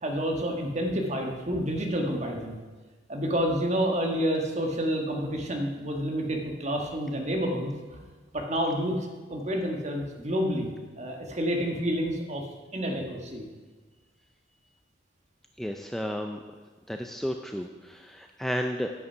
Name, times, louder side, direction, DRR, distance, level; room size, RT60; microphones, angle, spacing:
voice 1, 0.0-2.6 3.1-7.7 8.3-10.7 11.0-12.5 12.7-13.4, equal, 35° right, 1 dB, 1.5 m, -29 dB
voice 2, 15.6-16.4 16.9-18.9, equal, ahead, 4 dB, 0.4 m, -32 dB
9.5 x 8.4 x 5.6 m, 1.4 s
head